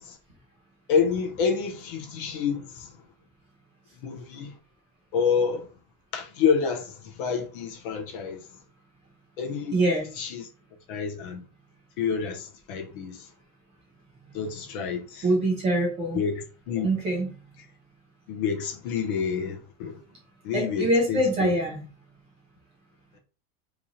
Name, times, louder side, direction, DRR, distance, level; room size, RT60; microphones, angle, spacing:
voice 1, 0.9-2.9 4.0-4.6 5.1-5.7 6.1-8.4 9.4-9.8 10.2-10.5 10.9-11.4 12.0-13.3 14.3-15.3 16.1-16.9 17.6-17.7 18.3-20.0 20.4-21.5, left 6 dB, 40° left, 0.4 m, -28 dB
voice 2, 9.7-10.1 15.2-16.2 16.8-17.3 20.5-21.8, right 1 dB, 15° right, 0.4 m, -24 dB
2.9 x 2.4 x 4.0 m
supercardioid pair, 180°, 45 cm